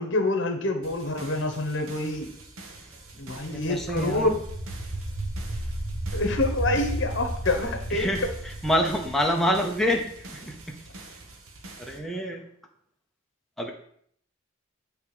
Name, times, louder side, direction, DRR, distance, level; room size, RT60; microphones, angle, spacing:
voice 1, 0.0-2.3 3.1-4.4 6.1-8.1, left 2 dB, 55° left, 5 dB, 1.0 m, -27 dB
sound 1, 0.8-12.0, right 2 dB, 75° right, 1.2 m, -46 dB
sound 2, 3.1-9.9, right 1 dB, 15° right, 1.3 m, -34 dB
voice 2, 3.5-4.3 7.9-10.8 11.8-12.4 13.6-13.7, equal, ahead, 1 dB, 0.7 m, -27 dB
8.9 x 3.4 x 4.9 m, 0.66 s
head